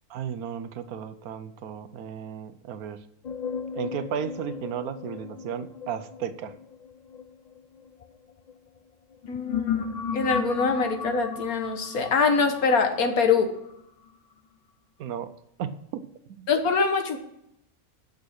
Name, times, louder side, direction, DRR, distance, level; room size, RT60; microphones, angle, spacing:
voice 1, 0.1-3.0 3.7-6.5 15.0-15.3 15.6-16.0 16.3-16.5, right 8 dB, 85° right, 12 dB, 1.2 m, -34 dB
sound 1, 3.2-8.5 9.1-14.1, left 6 dB, 60° left, 0.4 m, -35 dB
voice 2, 9.3-9.9 10.1-13.5 16.5-17.2, left 5 dB, 80° left, 6 dB, 1.7 m, -24 dB
8.9 x 6.6 x 6.4 m, 0.79 s
omnidirectional pair, 1.5 m